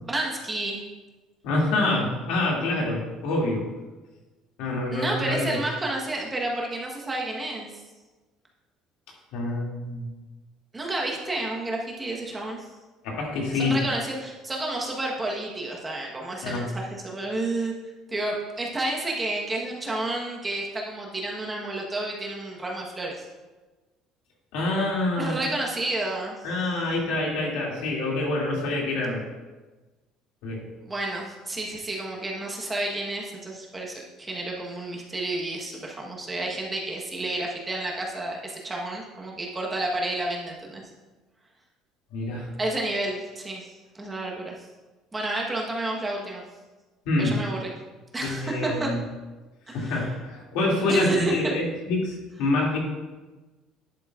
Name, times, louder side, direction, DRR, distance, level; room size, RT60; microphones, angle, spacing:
voice 1, 0.1-0.8 4.9-7.7 10.7-12.7 13.5-17.7 18.1-23.1 25.2-26.5 30.8-40.8 42.6-43.7 43.9-44.5 45.1-46.4 47.2-47.7 48.1-48.9 49.7-50.1 50.9-51.5, right 2 dB, 15° right, -2 dB, 1.1 m, -30 dB
voice 2, 1.4-3.7 4.6-5.6 9.3-10.1 13.0-13.8 16.4-16.7 24.5-25.4 26.4-29.2 30.4-30.7 42.1-42.5 47.1-47.4 48.2-49.0 49.7-52.8, left 2 dB, 80° left, -2 dB, 2.3 m, -26 dB
11.0 x 7.9 x 2.4 m, 1.2 s
cardioid pair, 175°, 0 cm